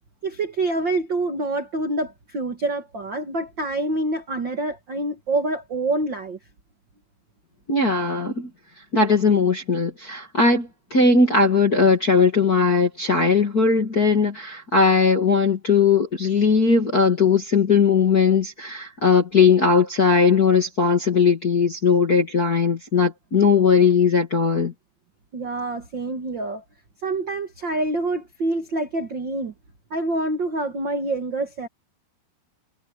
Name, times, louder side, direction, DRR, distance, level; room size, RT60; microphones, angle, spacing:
voice 1, 0.2-6.4 25.3-26.6 27.0-29.5 29.9-31.7, right 2 dB, 55° right, 1.2 m, -26 dB
voice 2, 7.7-8.5 8.9-24.7, left 5 dB, 35° left, 1.5 m, -19 dB
omnidirectional pair, 4.9 m